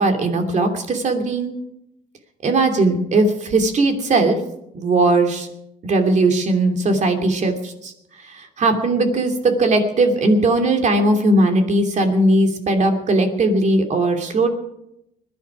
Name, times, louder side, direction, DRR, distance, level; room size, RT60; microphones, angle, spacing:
voice 1, 0.0-1.6 2.4-4.4 4.7-5.5 5.8-7.9 8.2-14.5, right 2 dB, 45° right, 5 dB, 2.8 m, -18 dB
20.5 x 11.0 x 6.0 m, 0.82 s
cardioid pair, 110°, 17 cm